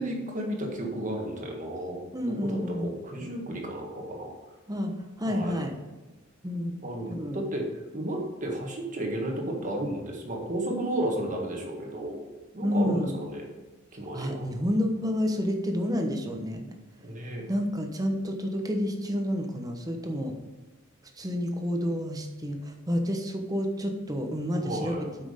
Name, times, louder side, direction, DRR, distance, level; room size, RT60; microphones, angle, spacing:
voice 1, 0.0-4.3 5.2-5.6 6.8-7.7 7.9-12.2 12.5-13.4 13.9-14.5 17.0-17.5 24.6-25.1, right 1 dB, 40° right, 1 dB, 1.6 m, -33 dB
voice 2, 2.1-2.9 4.7-5.7 6.4-6.8 7.1-7.4 12.6-13.1 14.1-16.7 17.5-20.3 21.2-22.6 22.9-25.2, equal, 20° right, 4 dB, 1.0 m, -29 dB
8.3 x 5.9 x 5.1 m, 1.2 s
head